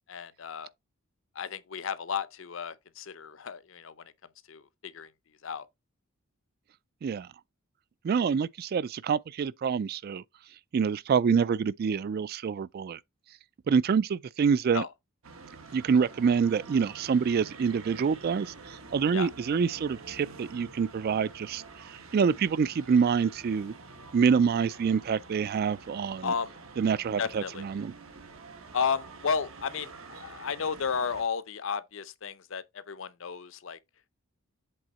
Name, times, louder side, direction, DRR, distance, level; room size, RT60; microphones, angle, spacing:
voice 1, 0.1-0.7 1.3-4.1 4.5-5.1 5.4-5.7 14.7-14.9 19.1-19.3 26.2-26.5 27.2-27.6 28.7-33.8, left 6 dB, 70° left, 0.6 m, -33 dB
voice 2, 8.0-10.2 10.7-13.0 13.7-14.8 15.7-23.7 24.1-26.3 26.8-27.9, right 6 dB, 45° right, 0.3 m, -26 dB
sound 1, 15.2-31.2, right 4 dB, 85° right, 1.4 m, -48 dB
7.8 x 3.5 x 4.2 m
head